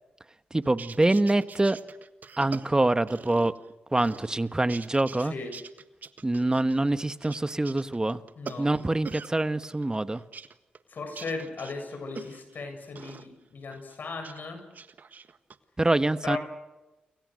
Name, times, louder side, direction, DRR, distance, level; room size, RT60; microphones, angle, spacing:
voice 1, 0.5-1.8 2.4-3.5 3.9-5.3 6.2-8.2 8.6-10.2 15.8-16.4, right 2 dB, 20° right, 12 dB, 1.3 m, -25 dB
sound 1, 0.6-3.7 4.0-5.3 5.5-9.3 9.6-12.6 13.0-13.3 13.7-14.4 14.7-15.6, right 5 dB, 55° right, 1.6 m, -44 dB
voice 2, 5.2-5.5 8.4-8.7 10.9-14.6 16.2-16.4, left 4 dB, 60° left, 6 dB, 7.7 m, -37 dB
29.5 x 24.5 x 6.5 m, 1.1 s
supercardioid pair, 50°, 3 cm